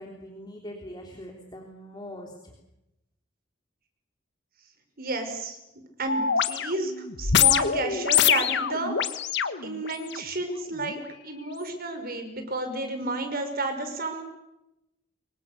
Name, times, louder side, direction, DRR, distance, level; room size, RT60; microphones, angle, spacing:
voice 1, 0.0-2.5, equal, 20° left, 1 dB, 3.5 m, -42 dB
voice 2, 5.0-5.6 6.0-6.9 7.2-9.2 9.6-14.2, right 2 dB, 50° right, 6 dB, 5.7 m, -31 dB
sound 1, 6.1-10.2 10.8-11.0, left 8 dB, 60° left, 1.4 m, -24 dB
27.5 x 24.0 x 6.8 m, 0.88 s
head